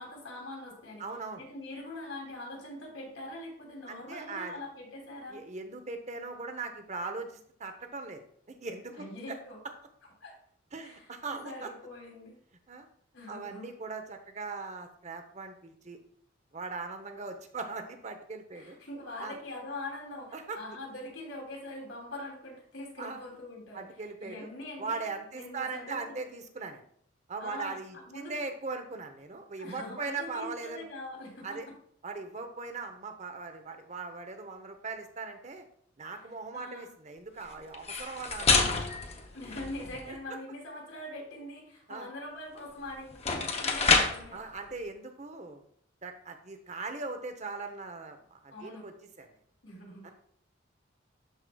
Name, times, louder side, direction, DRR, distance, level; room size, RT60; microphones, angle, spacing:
voice 1, 0.0-1.0 1.4-5.4 9.0-9.6 10.2-10.3 10.8-12.4 13.1-13.7 18.5-23.9 24.2-25.0 25.3-26.2 27.4-28.3 29.6-31.6 36.5-36.9 39.3-44.4 48.5-48.9 49.6-50.1, left 1 dB, 85° left, -1 dB, 2.9 m, -43 dB
voice 2, 1.0-1.4 3.9-4.6 5.3-8.2 8.5-9.4 10.7-11.7 12.7-12.9 13.3-16.0 16.5-18.8 19.2-19.4 20.3-20.6 23.0-23.2 23.7-24.5 24.8-26.8 27.3-30.9 31.4-31.7 32.0-35.7 36.0-38.7 40.1-40.4 41.9-42.1 44.3-45.6 46.0-49.3 50.0-50.1, right 4 dB, 35° right, 7 dB, 0.8 m, -40 dB
sound 1, 37.7-40.1 42.6-42.7 43.1-44.3, left 4 dB, 35° left, 0.7 m, -28 dB
12.0 x 4.8 x 2.3 m, 0.64 s
head